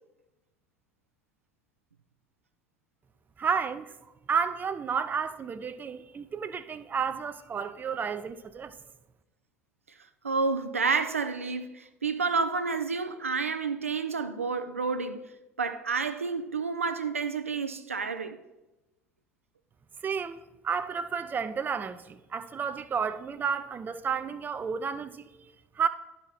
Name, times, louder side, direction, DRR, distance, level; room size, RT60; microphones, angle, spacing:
voice 1, 3.4-3.9 4.3-8.7 20.0-25.9, right 6 dB, 25° right, 0.5 m, -31 dB
voice 2, 10.2-15.2 15.6-18.4, right 4 dB, 85° right, 0.4 m, -30 dB
11.0 x 4.3 x 4.2 m
figure-of-eight pair, 65°, 7 cm